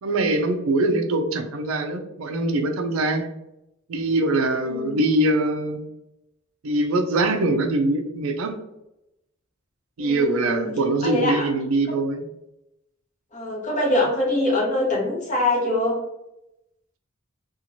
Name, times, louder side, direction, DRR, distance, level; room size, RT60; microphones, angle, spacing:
voice 1, 0.0-3.3 3.9-5.8 6.6-8.6 10.0-12.2, right 2 dB, 70° right, 6 dB, 0.4 m, -23 dB
voice 2, 4.6-5.0 10.0-10.7 11.0-11.5 11.9-12.0 13.3-16.0, left 1 dB, 35° left, -3 dB, 0.9 m, -24 dB
2.9 x 2.4 x 2.6 m, 0.86 s
head